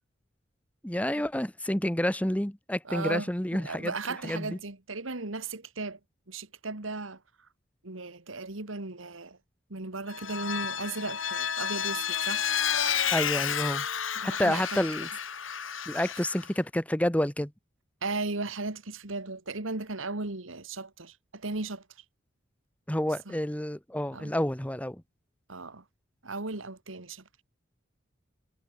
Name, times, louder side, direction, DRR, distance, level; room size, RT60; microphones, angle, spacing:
voice 1, 0.8-3.9 4.2-4.6 13.1-13.9 14.2-15.1 15.9-17.5 22.9-25.0, left 1 dB, 5° left, 1.1 m, -29 dB
voice 2, 2.9-6.0 6.3-7.2 7.8-9.4 9.7-12.5 14.2-14.7 18.0-21.8 23.3-23.4 24.1-24.3 25.5-25.8 26.2-27.2, right 3 dB, 85° right, 2.2 m, -36 dB
Vehicle, 10.1-16.5, left 8 dB, 85° left, 4.2 m, -31 dB
head